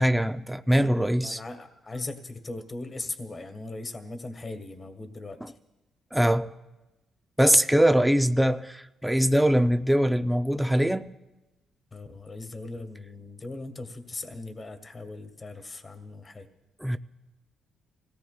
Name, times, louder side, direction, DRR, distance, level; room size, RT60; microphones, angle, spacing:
voice 1, 0.0-1.4 5.4-5.5 6.1-6.5 7.4-11.1 16.8-17.0, equal, 5° right, 0.4 m, -22 dB
voice 2, 1.2-5.4 11.9-16.5, left 2 dB, 30° left, 1.3 m, -39 dB
28.0 x 17.0 x 2.2 m
cardioid pair, 105°, 0 cm